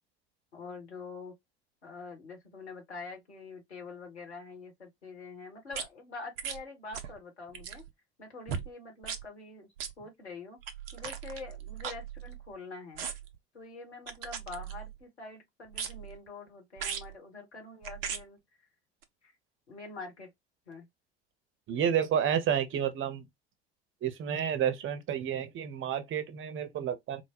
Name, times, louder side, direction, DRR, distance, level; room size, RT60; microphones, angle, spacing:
voice 1, 0.5-1.3 1.8-7.8 8.2-9.7 10.0-10.6 10.9-13.0 13.5-18.4 19.2-19.3 19.7-20.3 20.7-20.9, left 3 dB, 80° left, 1.5 m, -45 dB
sound 1, 5.7-5.9 6.4-6.6 6.9-7.2 7.5-7.9 8.5-8.7 9.0-9.2 9.8-9.9 10.6-12.5 13.0-13.4 14.1-15.0 15.7-16.2 16.8-17.1 17.8-18.2 19.0-19.1, right 7 dB, 60° right, 0.8 m, -38 dB
voice 2, 21.7-23.2 24.0-27.2, right 9 dB, 35° right, 1.1 m, -30 dB
4.5 x 2.3 x 2.9 m
figure-of-eight pair, 65°, 33 cm